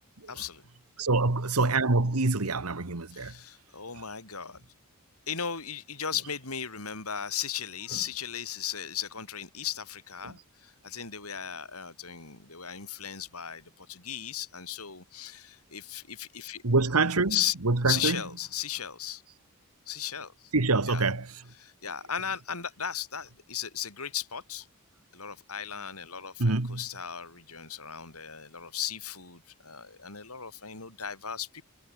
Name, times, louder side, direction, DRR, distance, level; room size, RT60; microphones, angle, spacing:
voice 1, 0.3-0.6 3.1-4.6 5.3-16.6 17.3-17.5 17.8-19.2 19.9-20.5 20.9-21.1 21.6-24.7 25.1-31.6, left 9 dB, 75° left, 6.4 m, -36 dB
voice 2, 1.0-3.3 10.2-10.3 16.6-17.4 17.6-18.2 20.5-21.3 26.4-26.8, right 3 dB, 75° right, 1.6 m, -25 dB
head